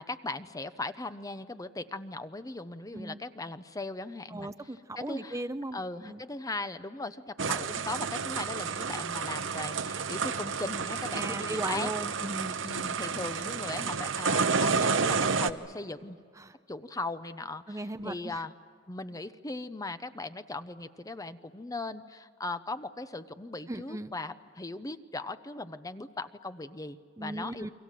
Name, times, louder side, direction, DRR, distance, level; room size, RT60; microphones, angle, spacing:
voice 1, 0.0-4.5 5.0-5.4 5.7-11.9 12.6-16.2 16.7-18.5 18.9-27.7, left 2 dB, 20° left, 11 dB, 0.7 m, -38 dB
voice 2, 4.3-6.2 11.1-12.6 16.4-16.5 17.7-18.4 23.7-24.1 27.2-27.7, right 1 dB, 15° right, 10 dB, 0.6 m, -37 dB
sound 1, 7.4-15.5, right 5 dB, 75° right, 0.9 m, -30 dB
29.5 x 23.5 x 7.5 m, 2.1 s
head